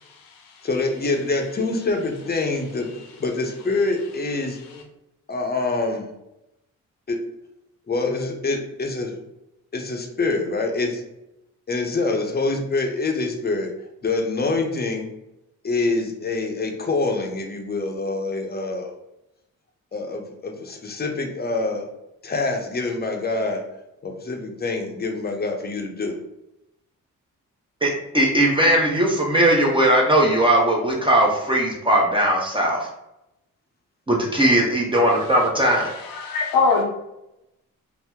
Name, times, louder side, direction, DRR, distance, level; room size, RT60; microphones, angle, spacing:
voice 1, 0.0-0.7 2.7-3.1 4.2-4.8 35.3-36.8, left 4 dB, 90° left, 1 dB, 0.6 m, -26 dB
voice 2, 0.6-2.9 3.2-4.6 5.3-6.1 7.1-7.2 7.9-9.2 9.7-11.0 11.7-13.7 14.0-15.1 15.6-18.9 19.9-21.8 22.2-23.6 24.0-26.2, left 3 dB, 30° left, 3 dB, 0.7 m, -25 dB
voice 3, 27.8-32.9 34.1-35.9, right 1 dB, 15° right, -2 dB, 0.7 m, -19 dB
2.8 x 2.0 x 3.4 m, 0.89 s
cardioid pair, 55°, 34 cm